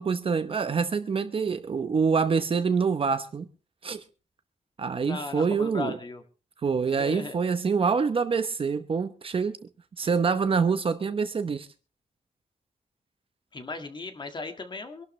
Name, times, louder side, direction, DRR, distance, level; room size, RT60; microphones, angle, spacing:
voice 1, 0.0-3.5 3.8-4.0 4.8-6.0 6.6-9.6 10.0-11.7, right 5 dB, 40° right, 0.9 m, -26 dB
voice 2, 5.0-6.2 6.9-7.4 10.0-10.1 13.5-15.0, left 3 dB, 35° left, 1.8 m, -37 dB
24.5 x 12.0 x 3.2 m
wide cardioid pair, 175°, 14 cm